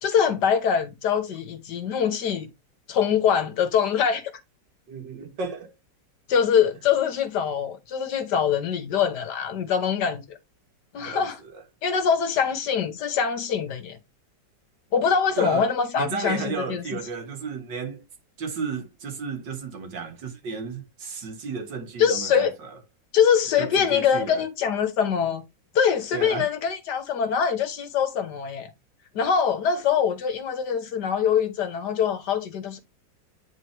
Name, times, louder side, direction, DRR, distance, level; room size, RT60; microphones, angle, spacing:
voice 1, 0.0-2.5 2.9-4.3 6.3-10.4 10.9-11.4 11.8-14.0 14.9-16.8 22.0-22.5 23.1-25.4 25.7-28.7 29.1-32.8, left 7 dB, 70° left, 1.6 m, -23 dB
voice 2, 4.9-5.7 11.0-11.6 15.4-18.0 18.4-22.8 23.6-24.4 26.1-26.5, right 5 dB, 75° right, 2.2 m, -33 dB
9.7 x 3.9 x 3.3 m
omnidirectional pair, 1.9 m